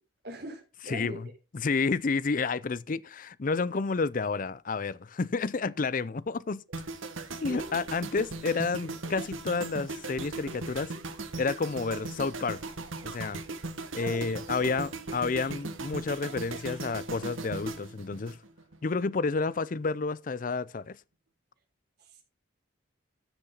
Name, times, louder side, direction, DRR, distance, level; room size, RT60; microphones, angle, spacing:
voice 1, 0.2-1.2 6.5-6.6 7.5-7.8 14.0-14.3 14.5-15.2 22.0-22.2, right 1 dB, 55° right, 3.6 m, -42 dB
voice 2, 0.9-1.3 1.5-6.6 7.4-10.9 11.4-12.6 13.0-13.4 13.9-18.4 18.8-21.0, left 4 dB, 40° left, 0.5 m, -30 dB
sound 1, 6.7-18.9 19.2-19.5, right 3 dB, 85° right, 1.8 m, -38 dB
13.0 x 6.8 x 3.9 m
head